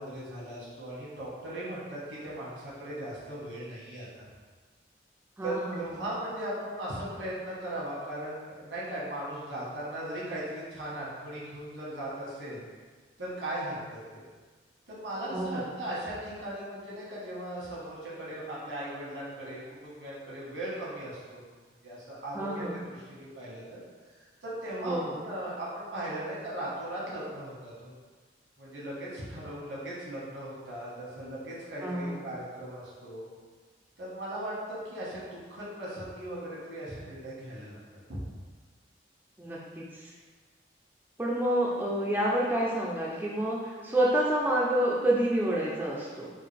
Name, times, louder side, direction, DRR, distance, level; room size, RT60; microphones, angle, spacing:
voice 1, 0.0-4.3 5.4-12.6 13.2-14.2 14.9-21.4 21.8-22.6 22.9-23.8 24.1-27.9 28.6-33.3 34.0-37.8 38.1-38.2, right 1 dB, 90° right, -7 dB, 1.4 m, -38 dB
voice 2, 5.4-5.8 15.3-15.7 22.3-22.8 24.8-25.2 31.8-32.3 39.4-40.1 41.2-46.3, right 1 dB, 10° right, -4 dB, 0.3 m, -28 dB
3.8 x 2.3 x 3.3 m, 1.5 s
head